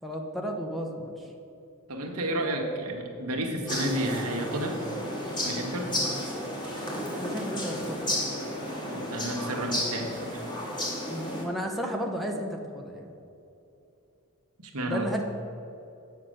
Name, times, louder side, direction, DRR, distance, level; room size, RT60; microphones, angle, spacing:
voice 1, 0.0-1.1 7.1-8.0 11.1-13.0 14.9-15.2, equal, ahead, 1 dB, 0.8 m, -33 dB
voice 2, 1.9-4.8 5.4-5.9 8.9-10.4 14.6-15.1, right 1 dB, 75° right, 2 dB, 1.3 m, -31 dB
sound 1, 3.7-11.5, left 1 dB, 20° left, 1.6 m, -32 dB
8.5 x 5.8 x 6.4 m, 2.7 s
head